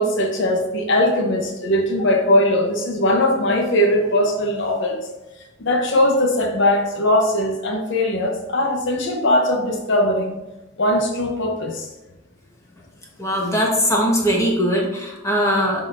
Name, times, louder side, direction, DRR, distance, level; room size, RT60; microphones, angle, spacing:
voice 1, 0.0-5.0 5.6-10.4 10.8-11.9, left 1 dB, 65° left, 3 dB, 0.8 m, -20 dB
voice 2, 13.2-15.9, equal, 15° left, -2 dB, 1.2 m, -20 dB
11.5 x 4.0 x 2.6 m, 1.0 s
head